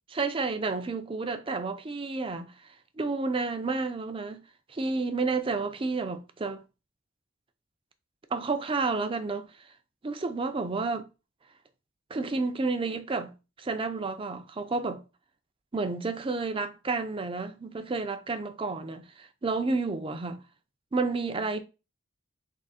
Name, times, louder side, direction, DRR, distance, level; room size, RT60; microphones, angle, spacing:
voice 1, 0.1-2.5 3.0-4.4 4.7-6.6 8.3-9.5 10.0-11.0 12.1-15.0 15.7-20.4 20.9-21.6, right 3 dB, 25° right, 0.5 m, -30 dB
3.6 x 2.9 x 4.1 m
head